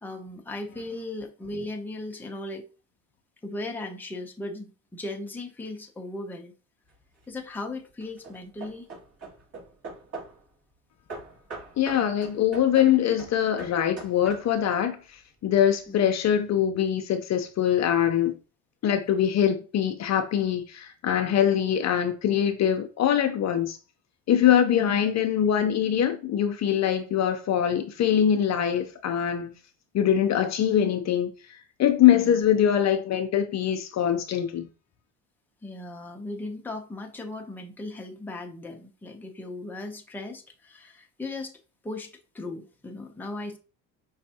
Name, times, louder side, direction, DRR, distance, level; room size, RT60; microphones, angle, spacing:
voice 1, 0.0-2.6 3.4-6.5 7.3-8.9 15.9-16.1 24.8-25.0 32.1-32.4 35.6-41.5 41.8-42.1 42.3-43.6, left 2 dB, 5° left, 0.7 m, -37 dB
Hammer / Wood, 6.9-7.4 8.0-10.5 11.1-14.8, right 3 dB, 40° right, 2.6 m, -42 dB
voice 2, 11.8-15.0 15.4-18.4 18.8-23.8 24.3-29.5 29.9-31.3 31.8-34.7, left 9 dB, 45° left, 0.7 m, -23 dB
5.3 x 3.2 x 2.8 m
cardioid pair, 110°, 37 cm